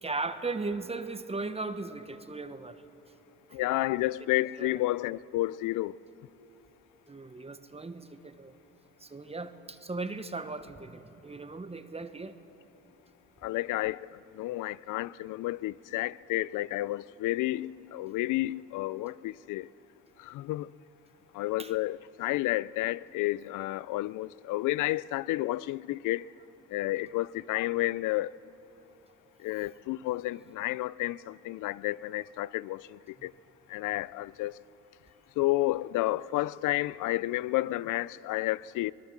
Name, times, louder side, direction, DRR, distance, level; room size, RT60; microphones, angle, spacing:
voice 1, 0.0-2.8 3.5-3.6 4.6-4.8 7.1-8.5 9.0-12.4 21.6-21.7, right 3 dB, 20° right, 1.2 m, -37 dB
voice 2, 3.5-5.9 13.4-19.7 20.2-20.7 21.3-26.2 26.7-28.3 29.4-33.3 33.7-34.5 35.4-38.9, left 17 dB, 85° left, 0.5 m, -31 dB
24.0 x 19.5 x 7.4 m
cardioid pair, 90°, 30 cm